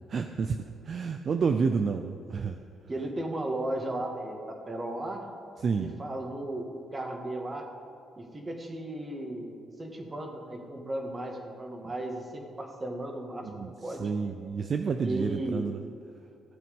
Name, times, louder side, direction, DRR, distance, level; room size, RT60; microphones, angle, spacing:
voice 1, 0.1-2.6 5.6-5.9 13.4-15.8, right 5 dB, 50° right, 7 dB, 0.5 m, -30 dB
voice 2, 2.9-5.3 5.8-7.7 8.2-14.1 15.0-15.7, right 1 dB, 25° right, 2 dB, 1.9 m, -35 dB
15.0 x 7.7 x 5.4 m, 2.5 s
cardioid pair, 90°, 0 cm